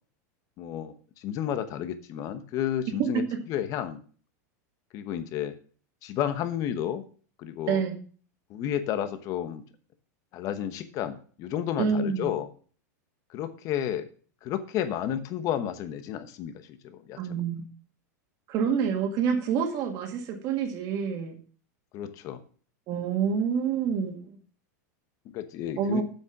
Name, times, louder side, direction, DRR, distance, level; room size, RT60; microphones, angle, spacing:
voice 1, 0.6-3.2 3.5-4.0 4.9-5.5 6.0-7.0 7.4-7.8 8.5-9.6 10.3-12.5 13.3-14.1 14.4-17.4 21.9-22.4 25.3-26.0, left 10 dB, 35° left, 10 dB, 1.1 m, -31 dB
voice 2, 11.8-12.2 17.2-17.6 18.5-21.4 22.9-24.4 25.8-26.0, right 7 dB, 40° right, 4 dB, 1.9 m, -27 dB
7.7 x 6.2 x 5.9 m, 0.42 s
supercardioid pair, 150°, 9 cm